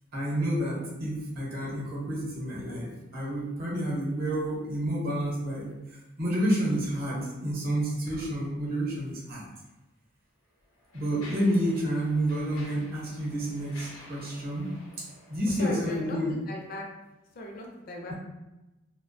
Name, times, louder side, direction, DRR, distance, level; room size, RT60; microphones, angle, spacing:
voice 1, 0.1-9.4 10.9-14.7 15.0-16.3, equal, 50° right, -4 dB, 0.8 m, -30 dB
Mechanisms, 9.5-9.7 10.4-16.2, left 1 dB, 90° left, 0.7 m, -51 dB
voice 2, 15.5-16.8 17.3-18.1, left 1 dB, 45° left, 0 dB, 0.4 m, -38 dB
2.4 x 2.1 x 2.6 m, 1.0 s
head